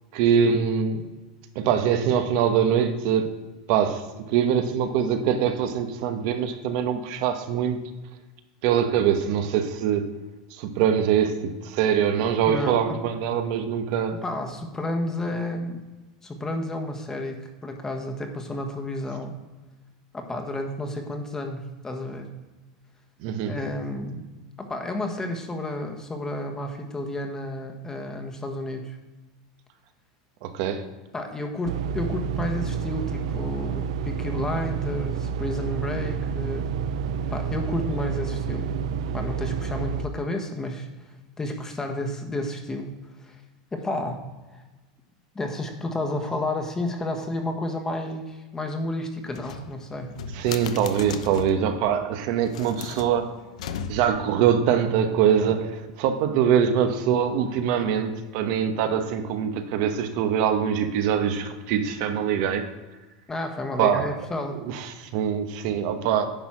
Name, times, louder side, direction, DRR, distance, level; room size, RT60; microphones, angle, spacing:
voice 1, 0.1-1.1 1.5-3.3 3.7-7.8 8.6-10.1 10.5-14.2 23.2-23.5 30.4-30.8 50.3-53.3 53.9-62.6 63.8-64.1 64.6-66.2, right 8 dB, 60° right, 7 dB, 1.1 m, -23 dB
voice 2, 12.5-13.0 14.1-15.9 16.2-19.3 20.1-22.3 23.5-24.3 24.6-29.0 31.1-36.7 37.3-38.7 39.1-40.9 41.4-43.4 43.7-44.2 44.5-44.6 45.3-50.1 63.3-64.6, left 1 dB, 15° left, 4 dB, 1.4 m, -31 dB
sound 1, 31.6-40.0, right 7 dB, 75° right, 0.5 m, -29 dB
sound 2, 49.3-51.7 52.4-54.3, left 6 dB, 85° left, 0.8 m, -37 dB
10.0 x 4.1 x 6.2 m, 1.2 s
supercardioid pair, 120°, 3 cm